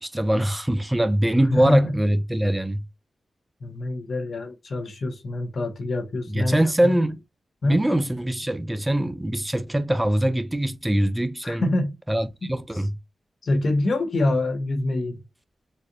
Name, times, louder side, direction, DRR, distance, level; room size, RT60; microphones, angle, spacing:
voice 1, 0.0-2.8 6.3-7.2 7.6-11.7 12.1-12.9, right 1 dB, 15° right, 0.5 m, -23 dB
voice 2, 1.5-2.0 3.6-6.9 7.6-7.8 11.4-11.9 13.4-15.2, left 2 dB, 60° left, 1.0 m, -25 dB
4.2 x 2.5 x 2.5 m
cardioid pair, 55°, 0 cm